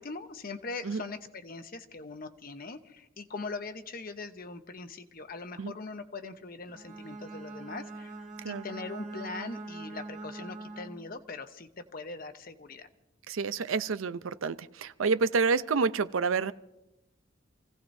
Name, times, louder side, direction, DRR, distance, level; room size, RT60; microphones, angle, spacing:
voice 1, 0.0-12.9, left 3 dB, 45° left, 8 dB, 0.9 m, -41 dB
Bowed string instrument, 6.7-11.2, right 2 dB, 40° right, 1.5 m, -43 dB
voice 2, 13.3-16.5, right 4 dB, 85° right, 14 dB, 0.6 m, -28 dB
28.5 x 16.5 x 2.7 m, 0.92 s
head